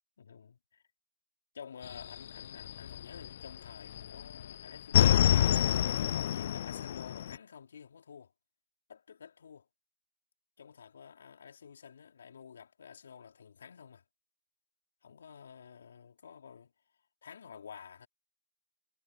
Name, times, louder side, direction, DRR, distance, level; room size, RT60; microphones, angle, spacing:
voice 1, 0.2-0.8 1.5-8.3 8.9-9.7 10.6-14.0 15.0-16.7 17.2-18.1, left 7 dB, 75° left, 4.9 m, -51 dB
sound 1, 1.8-3.5 3.9-7.4, left 11 dB, 55° left, 0.3 m, -27 dB
hypercardioid pair, 140°, 0 cm